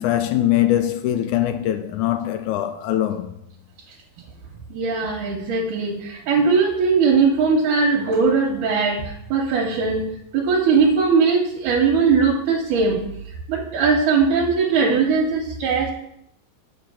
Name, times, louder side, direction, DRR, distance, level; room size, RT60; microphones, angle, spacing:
voice 1, 0.0-3.3, left 12 dB, 80° left, 1.8 m, -22 dB
voice 2, 4.7-13.0 13.5-15.9, right 5 dB, 75° right, 2.4 m, -20 dB
8.1 x 5.1 x 5.5 m
omnidirectional pair, 3.8 m